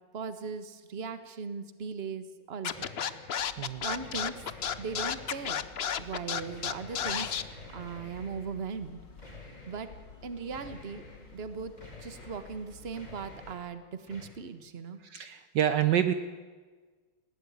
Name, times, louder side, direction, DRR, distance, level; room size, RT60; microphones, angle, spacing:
voice 1, 0.1-2.9 3.8-4.4 4.8-5.6 6.0-7.4 7.7-9.0 9.7-9.9 10.2-11.0 11.3-11.7 12.0-15.0, right 5 dB, 35° right, 11 dB, 1.4 m, -38 dB
Scratching (performance technique), 2.6-7.4, left 8 dB, 85° left, 0.5 m, -31 dB
sound 1, 2.7-3.5 4.0-5.9 6.3-8.6 9.2-10.0 10.5-11.3 11.8-12.6 12.9-13.8 14.1-14.2, left 2 dB, 20° left, 4.1 m, -50 dB
sound 2, 3.4-13.5, left 4 dB, 60° left, 3.2 m, -52 dB
voice 2, 15.0-16.1, right 10 dB, 65° right, 11 dB, 1.4 m, -27 dB
19.5 x 16.5 x 9.6 m, 1.4 s
omnidirectional pair, 2.2 m